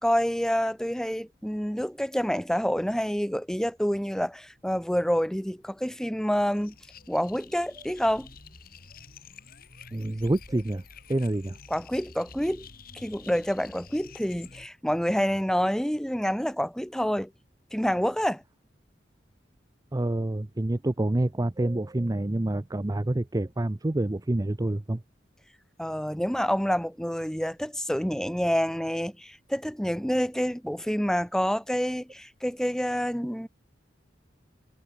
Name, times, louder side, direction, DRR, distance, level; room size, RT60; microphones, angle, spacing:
voice 1, 0.0-6.7 7.1-8.3 11.7-12.7 12.9-17.3 17.7-18.4 25.8-33.5, equal, 5° left, 1.3 m, -27 dB
sound 1, 6.3-14.7, left 4 dB, 55° left, 5.9 m, -49 dB
voice 2, 9.9-10.8 11.1-11.6 19.9-25.0, right 1 dB, 20° right, 0.6 m, -27 dB
head